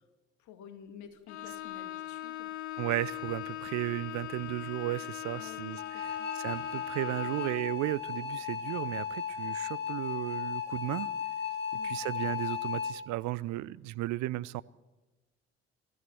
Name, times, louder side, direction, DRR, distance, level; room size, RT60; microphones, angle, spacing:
voice 1, 0.4-2.5 5.3-6.3 11.7-12.0, left 8 dB, 60° left, 9 dB, 2.1 m, -51 dB
Bowed string instrument, 1.3-7.8, left 13 dB, 80° left, 0.7 m, -40 dB
voice 2, 2.8-11.1 11.8-14.6, right 17 dB, 60° right, 19 dB, 0.6 m, -35 dB
sound 1, 5.8-12.9, left 7 dB, 30° left, 2.8 m, -36 dB
23.0 x 14.0 x 9.5 m, 1.1 s
figure-of-eight pair, 45°, 32 cm